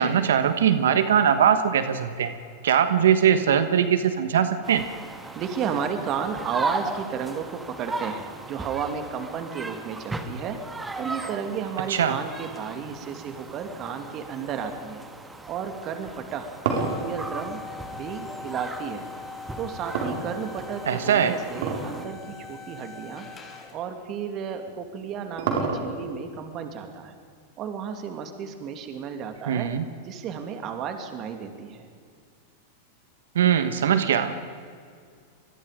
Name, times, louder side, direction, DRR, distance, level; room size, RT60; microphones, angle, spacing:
voice 1, 0.0-2.3 2.6-4.8 11.9-12.2 20.9-21.4 29.5-29.8 33.3-34.3, right 8 dB, 85° right, 10 dB, 1.4 m, -21 dB
sound 1, 4.6-22.0, right 2 dB, 10° right, 1.8 m, -37 dB
voice 2, 5.3-10.6 11.0-15.1 15.5-17.6 17.9-19.1 19.6-23.3 23.7-27.2 27.6-29.7 30.0-31.9, right 7 dB, 40° right, 6 dB, 2.5 m, -33 dB
sound 2, 16.1-18.6 19.9-20.8 21.5-22.0 22.3-22.4 23.2-23.3 24.7-26.2, right 4 dB, 70° right, 4.7 m, -28 dB
sound 3, 16.7-23.9, left 5 dB, 25° left, 4.4 m, -42 dB
25.5 x 21.0 x 5.2 m, 2.2 s
hypercardioid pair, 120°, 0 cm